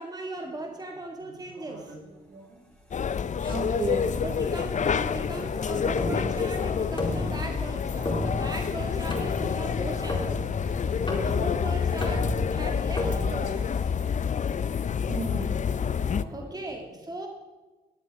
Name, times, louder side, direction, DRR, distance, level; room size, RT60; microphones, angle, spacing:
voice 1, 0.0-1.9 4.2-10.4 11.2-13.9 16.3-17.3, right 2 dB, 20° right, 2 dB, 2.1 m, -38 dB
voice 2, 1.2-2.6 3.5-4.2 14.2-15.6 15.9-16.9, right 2 dB, 75° right, -3 dB, 4.5 m, -37 dB
sound 1, 1.9-15.3, equal, 5° left, 4.0 m, -46 dB
sound 2, 2.9-16.2, left 7 dB, 45° left, 0.6 m, -28 dB
sound 3, 3.4-14.1, left 1 dB, 30° left, 4.4 m, -35 dB
15.0 x 9.3 x 3.6 m, 1.2 s
supercardioid pair, 50°, 18 cm